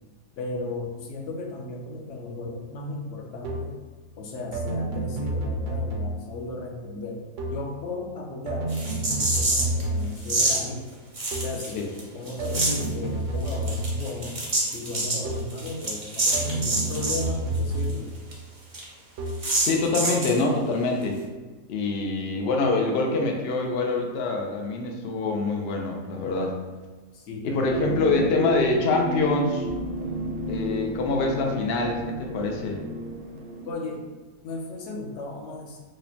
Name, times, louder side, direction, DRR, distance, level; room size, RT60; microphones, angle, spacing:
voice 1, 0.4-3.8 4.2-7.2 7.5-10.8 11.4-14.4 14.7-18.1 27.1-28.2 30.1-30.3 33.6-34.0 34.4-35.8, left 2 dB, 65° left, 0 dB, 0.8 m, -35 dB
sound 1, 3.4-3.9 4.5-6.5 7.4-7.8 8.5-10.4 11.3-11.7 12.4-14.3 15.2-15.7 16.3-18.3 19.2-19.6, right 1 dB, 65° right, 0.8 m, -30 dB
sound 2, 8.7-9.8 10.2-10.6 11.2-12.0 12.3-12.9 13.4-17.3 17.5-17.6 17.9-18.0 18.3-18.4 18.7-18.8 19.4-20.4, right 2 dB, 45° right, 0.4 m, -26 dB
voice 2, 19.6-21.2 21.7-26.6 27.4-29.7 30.5-32.8, left 3 dB, 90° left, 1 dB, 0.5 m, -25 dB
sound 3, 27.6-33.7, right 2 dB, 85° right, 1.1 m, -32 dB
4.9 x 2.1 x 2.7 m, 1.3 s
omnidirectional pair, 1.6 m